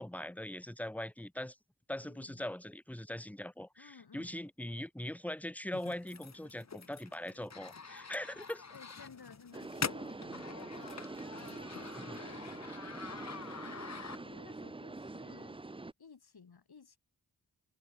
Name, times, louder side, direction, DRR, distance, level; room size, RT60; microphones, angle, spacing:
voice 1, 0.0-1.6 1.9-8.6 11.9-12.2, left 1 dB, 5° left, 1.2 m, -41 dB
voice 2, 2.1-2.5 3.8-4.4 8.7-11.0 11.3-12.7 13.1-17.0, left 5 dB, 80° left, 6.2 m, -57 dB
sound 1, 5.7-14.6, left 5 dB, 45° left, 1.4 m, -45 dB
sound 2, 9.5-15.9, right 2 dB, 15° right, 0.6 m, -45 dB
cardioid pair, 45°, 37 cm